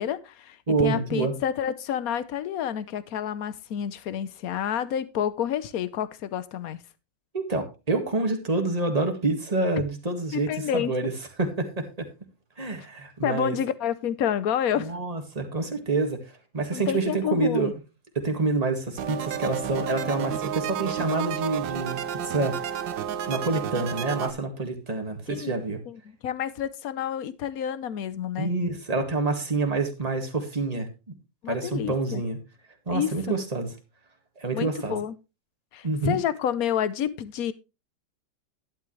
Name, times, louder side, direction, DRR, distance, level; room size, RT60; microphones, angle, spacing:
voice 1, 0.0-6.8 10.3-10.9 13.2-14.9 16.7-17.7 25.3-25.5 25.9-28.5 31.4-32.2 32.9-33.4 34.5-35.1 35.7-37.5, left 9 dB, 60° left, 1.2 m, -29 dB
voice 2, 0.7-1.3 7.3-11.1 11.4-12.1 12.6-13.6 14.8-16.2 16.5-17.7 18.2-22.6 23.3-25.8 28.4-30.9 31.5-32.4 32.9-33.7 34.4-35.0 35.8-36.2, right 3 dB, 20° right, 1.9 m, -27 dB
sound 1, 19.0-24.3, right 9 dB, 80° right, 1.6 m, -31 dB
11.5 x 10.5 x 3.2 m
omnidirectional pair, 2.0 m